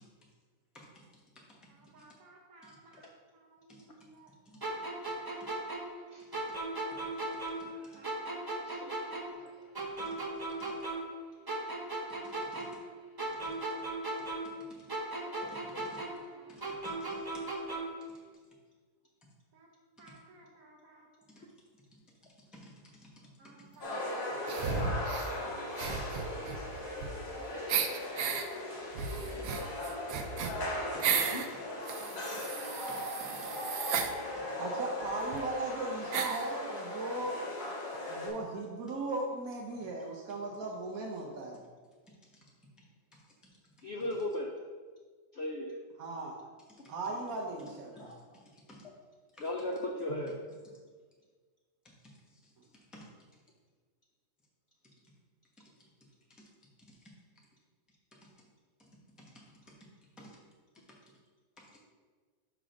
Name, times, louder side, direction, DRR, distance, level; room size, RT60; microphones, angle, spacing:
voice 1, 1.7-3.0 3.3-4.3 6.8-7.0 7.9-8.9 9.3-9.5 11.1-11.6 12.0-12.9 16.1-17.1 19.5-19.7 20.0-21.1 23.4-24.0 26.8-27.3 27.6-28.1 34.6-37.4 37.7-41.6 46.0-46.3 46.9-48.1, right 2 dB, 60° right, -1 dB, 1.1 m, -41 dB
sound 1, 4.6-7.8 8.0-11.2 11.5-14.6 14.9-18.0, right 2 dB, 30° right, 0.4 m, -37 dB
voice 2, 7.6-8.2 8.6-8.9 9.4-9.5 15.4-15.8 17.7-17.8 21.4-21.5 28.3-28.5 29.1-30.2 31.2-31.4 40.6-40.7 43.8-44.5 45.3-45.7 47.1-47.2 47.9-48.2 49.4-50.3, left 1 dB, 85° left, 0 dB, 0.5 m, -39 dB
voice 3, 15.5-16.0 16.5-17.4 22.5-22.7 23.0-23.1 24.6-24.7 30.2-30.3 30.9-31.3 32.3-32.4 32.9-33.0 48.7-48.8 49.3-49.4 52.9-53.1 60.2-60.3 61.6-61.8, equal, ahead, -3 dB, 0.8 m, -53 dB
sound 2, 23.8-38.3, left 1 dB, 55° left, 2.3 m, -38 dB
sound 3, 24.5-25.3 25.7-27.3 27.7-28.4 28.9-31.5 31.9-34.1 35.0-35.1 35.3-35.4 36.1-36.5, right 6 dB, 85° right, 1.4 m, -34 dB
6.0 x 4.9 x 5.1 m, 1.5 s
omnidirectional pair, 2.0 m